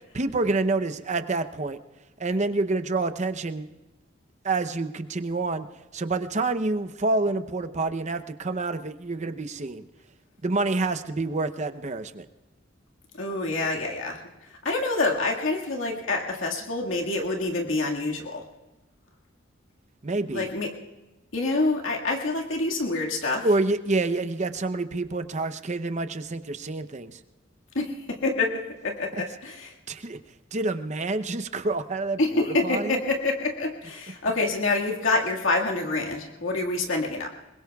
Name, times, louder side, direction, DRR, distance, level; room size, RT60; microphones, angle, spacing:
voice 1, 0.1-1.8 2.2-3.7 4.4-5.7 5.9-9.8 10.4-12.3 20.0-20.5 23.4-27.2 29.1-29.2 29.9-30.2 30.5-33.0, right 3 dB, 40° right, 10 dB, 0.7 m, -27 dB
voice 2, 13.2-14.2 14.6-18.5 20.3-20.7 21.3-23.5 27.8-29.7 32.2-37.3, left 2 dB, 85° left, 0 dB, 1.9 m, -27 dB
26.0 x 21.5 x 2.4 m, 1.1 s
head